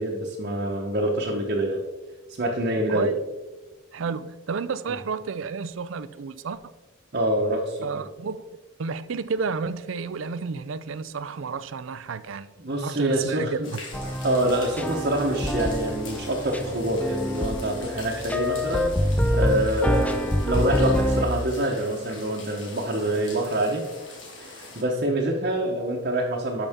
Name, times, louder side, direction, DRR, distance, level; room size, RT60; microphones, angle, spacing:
voice 1, 0.0-1.8 2.4-3.1 7.1-8.0 12.6-13.7 14.2-23.8 24.4-26.7, right 1 dB, 50° right, -2 dB, 1.1 m, -26 dB
voice 2, 2.9-3.2 3.9-6.7 7.8-8.5 8.8-12.5 12.8-13.8, right 5 dB, 70° right, 15 dB, 0.5 m, -31 dB
sound 1, 13.6-24.8, left 2 dB, 65° left, 2.2 m, -43 dB
sound 2, 13.9-21.3, equal, 5° left, 0.4 m, -26 dB
12.0 x 5.7 x 3.6 m, 1.2 s
head